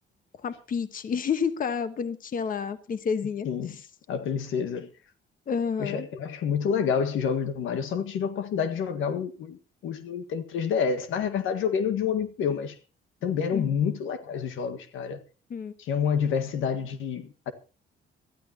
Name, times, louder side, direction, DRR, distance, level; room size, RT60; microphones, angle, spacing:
voice 1, 0.4-3.5 5.5-6.1 13.5-13.7 15.5-15.7, left 6 dB, 45° left, 1.3 m, -29 dB
voice 2, 3.5-3.8 4.1-4.9 5.8-9.6 9.8-12.8 13.2-15.2 15.8-17.5, left 7 dB, 85° left, 1.7 m, -28 dB
23.5 x 14.0 x 2.9 m
cardioid pair, 130°, 20 cm